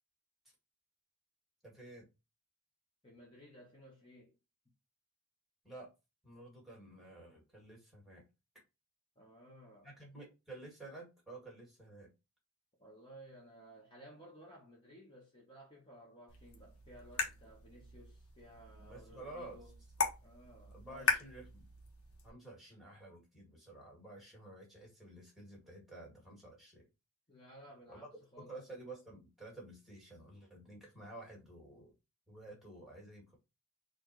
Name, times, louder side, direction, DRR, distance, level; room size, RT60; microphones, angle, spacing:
voice 1, 1.6-2.1 5.6-5.9 6.2-8.2 9.8-12.1 18.9-19.6 20.7-21.7 22.2-26.8 27.9-28.0 28.4-31.9 32.3-33.3, right 2 dB, ahead, 2.0 m, -51 dB
voice 2, 3.0-4.3 9.1-9.9 12.8-19.8 20.2-21.2 27.3-28.5, right 1 dB, 25° left, 1.2 m, -57 dB
sound 1, 16.3-22.3, left 4 dB, 80° left, 1.1 m, -40 dB
4.3 x 2.6 x 4.5 m
head